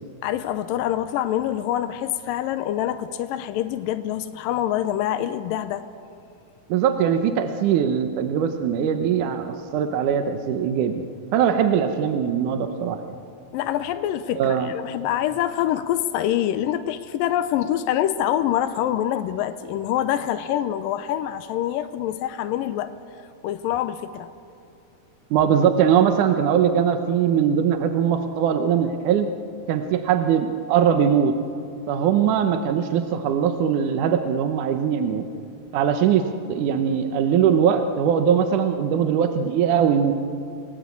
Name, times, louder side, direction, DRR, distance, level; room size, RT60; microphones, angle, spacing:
voice 1, 0.2-5.8 13.5-22.9 23.4-24.3, left 11 dB, 80° left, 10 dB, 2.4 m, -25 dB
voice 2, 6.7-13.2 14.4-14.7 25.3-29.3 29.7-31.4 31.9-35.3 35.7-36.2 36.5-40.1, right 8 dB, 70° right, 7 dB, 2.3 m, -21 dB
29.5 x 19.5 x 8.4 m, 2.6 s
omnidirectional pair, 4.1 m